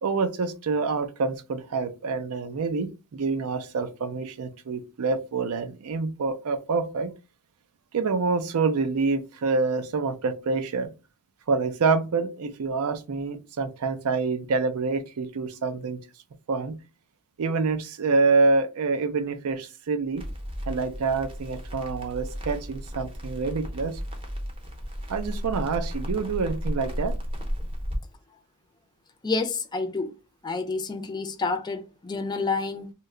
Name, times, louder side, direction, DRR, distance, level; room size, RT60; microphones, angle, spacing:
voice 1, 0.0-7.1 7.9-10.9 11.5-16.0 16.5-16.8 17.4-20.2 20.7-24.0 25.1-27.1, right 4 dB, 70° right, 0.4 m, -26 dB
Crackle, 20.1-28.0, equal, 25° right, 0.7 m, -34 dB
voice 2, 29.2-30.1 30.4-32.9, left 4 dB, 20° left, 0.4 m, -29 dB
2.8 x 2.1 x 3.6 m
head